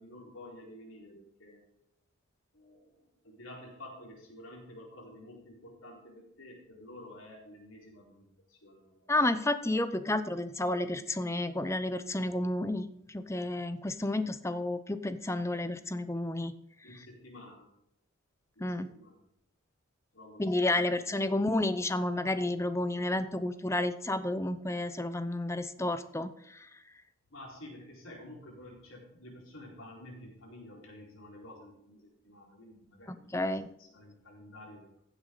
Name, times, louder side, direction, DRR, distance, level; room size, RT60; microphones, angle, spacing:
voice 1, 0.0-1.6 2.5-9.1 16.8-17.7 18.6-19.2 20.1-21.4 27.3-35.0, left 1 dB, 80° left, -2 dB, 4.4 m, -50 dB
voice 2, 9.1-12.9 13.1-16.5 18.6-18.9 20.4-26.3 33.1-33.6, left 1 dB, 15° left, 11 dB, 0.6 m, -31 dB
15.5 x 8.3 x 4.0 m, 0.80 s
head